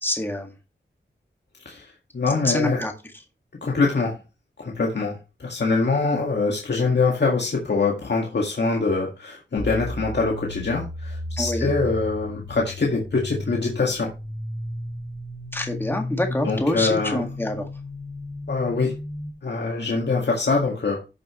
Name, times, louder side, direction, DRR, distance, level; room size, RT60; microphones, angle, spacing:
voice 1, 0.0-0.5 2.3-2.9 11.4-11.7 15.5-17.7, left 1 dB, 10° left, 3 dB, 1.9 m, -26 dB
voice 2, 1.7-2.8 3.6-4.2 4.6-14.1 16.5-17.2 18.5-18.9 19.4-21.0, left 4 dB, 65° left, -1 dB, 1.9 m, -24 dB
sound 1, 9.6-19.3, left 1 dB, 40° left, 4.2 m, -34 dB
12.0 x 6.9 x 3.1 m, 0.30 s
wide cardioid pair, 75°, 19 cm